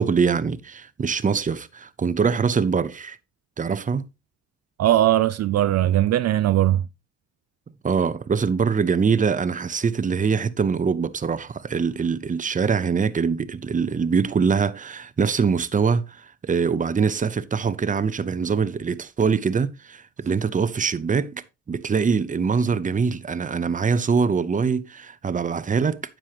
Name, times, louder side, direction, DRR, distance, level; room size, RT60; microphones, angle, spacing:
voice 1, 0.0-3.2 3.6-4.0 7.8-26.0, right 5 dB, 25° right, 0.7 m, -23 dB
voice 2, 4.8-6.8, right 13 dB, 55° right, 0.4 m, -19 dB
9.8 x 7.6 x 3.0 m
cardioid pair, 90°, 30 cm